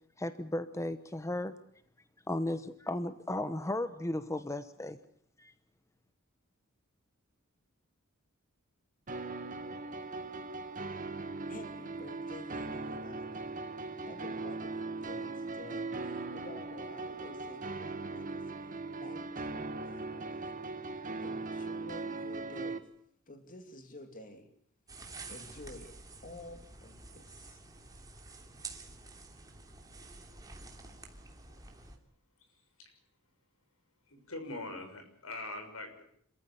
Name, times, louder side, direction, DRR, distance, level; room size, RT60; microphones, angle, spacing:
voice 1, 0.2-1.5 2.3-5.0 5.4-5.5, left 1 dB, 15° left, 11 dB, 0.9 m, -35 dB
sound 1, 9.1-22.8, right 3 dB, 40° right, 1.7 m, -39 dB
voice 2, 11.5-13.5 14.1-22.9 23.3-24.5 25.3-26.0 26.2-27.6, left 1 dB, 40° left, 5 dB, 2.8 m, -51 dB
sound 2, 24.9-32.0, right 3 dB, 15° right, 3.1 m, -49 dB
voice 3, 32.5-33.0 34.1-36.0, left 2 dB, 75° left, 6 dB, 6.3 m, -43 dB
27.0 x 14.5 x 9.9 m, 0.67 s
head